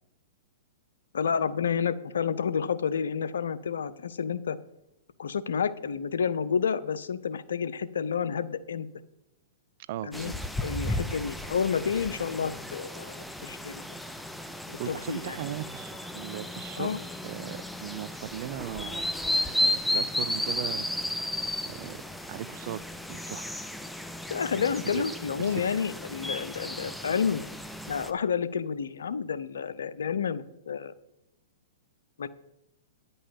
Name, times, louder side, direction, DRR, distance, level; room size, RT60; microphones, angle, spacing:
voice 1, 1.1-4.6 5.2-8.9 10.0-10.3 10.6-13.8 14.7-15.4 16.7-17.0 24.3-27.4 27.9-30.9 32.2-32.3, left 6 dB, 80° left, 16 dB, 0.6 m, -30 dB
voice 2, 9.9-10.3 14.8-19.2 19.6-20.9 21.7-22.0 22.3-22.8 23.1-23.5 25.0-25.1 25.4-25.8, right 13 dB, 55° right, 18 dB, 0.5 m, -38 dB
sound 1, 10.1-28.1, left 1 dB, 5° left, 0.6 m, -34 dB
9.7 x 5.5 x 7.3 m, 0.89 s
hypercardioid pair, 120°, 0 cm